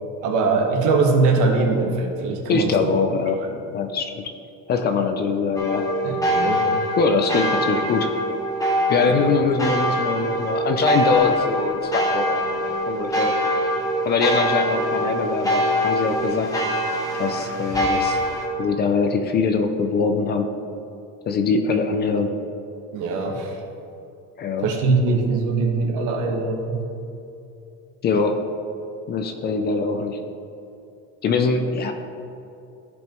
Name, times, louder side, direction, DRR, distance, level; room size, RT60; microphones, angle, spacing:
voice 1, 0.2-2.9 3.5-3.6 6.0-6.6 9.1-9.3 22.9-23.6 24.6-26.8, right 3 dB, 65° right, 2 dB, 1.4 m, -22 dB
voice 2, 2.5-3.4 3.7-4.3 4.7-5.9 7.0-8.1 8.9-12.4 12.9-13.3 14.0-16.5 17.2-18.2 18.6-20.5 21.3-22.3 24.4-24.7 28.0-28.4 29.1-30.2 31.2-31.9, left 4 dB, 30° left, 6 dB, 0.4 m, -22 dB
sound 1, 5.6-18.5, equal, 10° left, 0.9 m, -23 dB
14.5 x 5.2 x 3.0 m, 2.7 s
cardioid pair, 170°, 33 cm